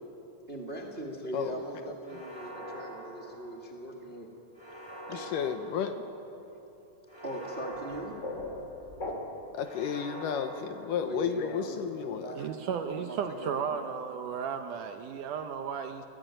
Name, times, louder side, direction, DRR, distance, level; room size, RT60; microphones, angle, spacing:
voice 1, 0.5-4.3 5.1-5.3 7.2-8.1 11.0-13.9, right 1 dB, 30° right, 2 dB, 1.0 m, -40 dB
sound 1, 2.0-3.9 4.5-6.4 7.1-8.9 9.6-11.5, right 1 dB, 5° left, 3.7 m, -45 dB
voice 2, 5.1-6.1 9.5-12.5, left 8 dB, 75° left, 8 dB, 2.3 m, -33 dB
sound 2, 7.7-9.6, left 1 dB, 25° left, 2.3 m, -39 dB
voice 3, 12.4-16.1, right 7 dB, 75° right, 6 dB, 2.0 m, -34 dB
22.0 x 16.5 x 8.9 m, 2.9 s
omnidirectional pair, 4.3 m